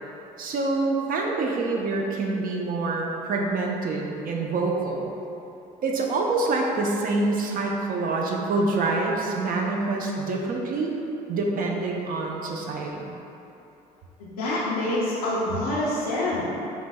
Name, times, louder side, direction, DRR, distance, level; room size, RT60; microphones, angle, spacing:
voice 1, 0.4-5.1 5.8-10.9 11.3-13.0, right 3 dB, 50° right, 0 dB, 0.6 m, -26 dB
voice 2, 14.2-16.5, left 1 dB, 90° left, -8 dB, 0.5 m, -26 dB
5.0 x 3.1 x 2.2 m, 2.9 s
hypercardioid pair, 65°, 18 cm